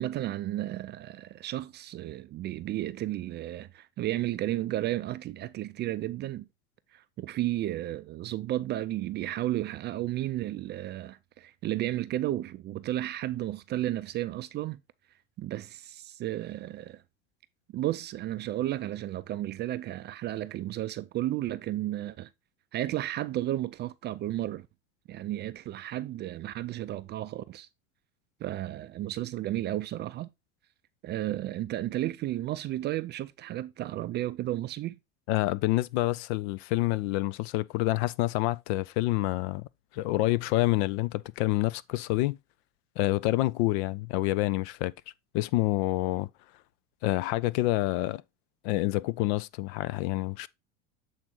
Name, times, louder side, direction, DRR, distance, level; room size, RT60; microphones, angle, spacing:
voice 1, 0.0-6.5 6.9-14.8 15.4-17.0 17.7-22.3 22.7-24.7 25.1-27.7 28.4-30.3 31.0-35.0, right 14 dB, 30° right, 0.4 m, -33 dB
voice 2, 35.3-39.7 39.9-42.4 43.0-44.9 45.3-46.3 47.0-48.2 48.6-50.5, left 18 dB, 55° left, 0.5 m, -27 dB
7.6 x 4.0 x 4.3 m
hypercardioid pair, 95°, 39 cm